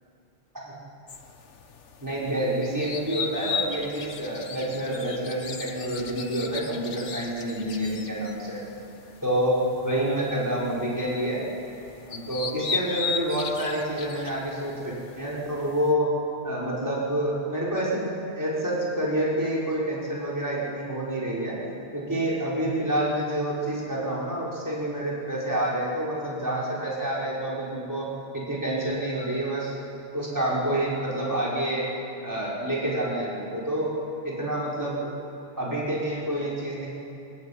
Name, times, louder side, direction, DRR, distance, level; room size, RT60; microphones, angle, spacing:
sound 1, 1.1-15.9, left 5 dB, 90° left, 1.6 m, -37 dB
voice 1, 2.0-8.6 9.2-11.4 12.1-16.1 16.4-18.1 18.4-21.6 21.9-29.8 30.1-31.9 32.2-33.9 34.2-35.1 35.6-36.9, right 1 dB, 15° right, -6 dB, 5.5 m, -28 dB
22.0 x 20.0 x 8.8 m, 2.8 s
omnidirectional pair, 1.2 m